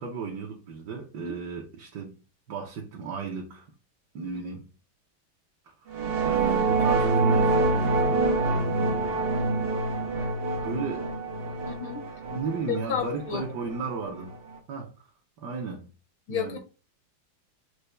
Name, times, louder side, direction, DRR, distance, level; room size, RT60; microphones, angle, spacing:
voice 1, 0.0-2.1 2.5-3.7 4.1-4.6 5.7-5.8 6.3-9.3 10.5-11.1 12.3-14.4 14.7-15.1 15.4-15.9 16.3-16.6, right 4 dB, 65° right, 1.3 m, -35 dB
sound 1, 5.9-14.6, right 3 dB, 85° right, 0.5 m, -26 dB
voice 2, 11.6-12.0 12.7-13.4 16.3-16.6, left 7 dB, 75° left, 1.4 m, -31 dB
6.6 x 2.2 x 3.2 m
omnidirectional pair, 2.2 m